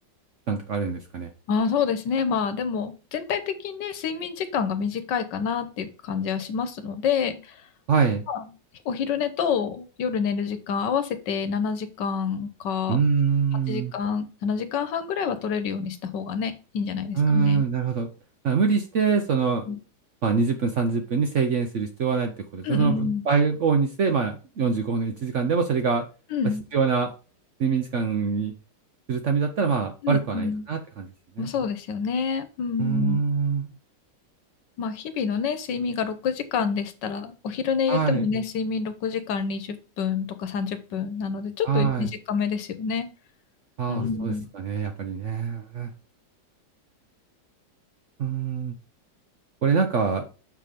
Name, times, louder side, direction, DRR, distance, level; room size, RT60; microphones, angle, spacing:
voice 1, 0.5-1.3 7.9-8.2 12.9-13.9 17.2-18.1 18.4-19.6 20.2-26.0 26.7-27.1 27.6-28.5 29.1-31.1 31.4-31.5 32.8-33.7 37.9-38.3 41.6-42.1 43.8-45.9 48.2-48.7 49.6-50.2, right 5 dB, 60° right, 5 dB, 0.8 m, -24 dB
voice 2, 1.5-7.5 8.3-8.5 8.8-13.0 13.7-17.6 19.7-19.8 22.6-23.2 26.3-26.6 30.0-30.7 31.4-33.2 34.8-43.1 43.9-44.5, left 6 dB, 75° left, 10 dB, 1.5 m, -27 dB
5.9 x 4.6 x 5.0 m, 0.34 s
omnidirectional pair, 1.9 m